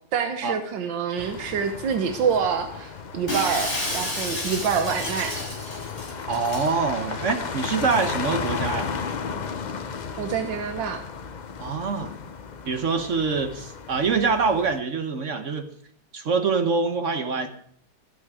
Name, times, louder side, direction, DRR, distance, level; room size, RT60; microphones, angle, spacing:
voice 1, 0.1-5.3 10.1-11.0, right 6 dB, 85° right, 7 dB, 1.8 m, -26 dB
sound 1, 1.2-14.8, left 5 dB, 60° left, 0.4 m, -34 dB
Shatter, 3.3-6.7, left 1 dB, 30° left, 6.2 m, -31 dB
voice 2, 6.3-8.9 11.6-12.1 12.7-15.7 16.1-17.5, right 4 dB, 50° right, 8 dB, 1.2 m, -25 dB
20.0 x 8.7 x 4.9 m, 0.62 s
omnidirectional pair, 2.0 m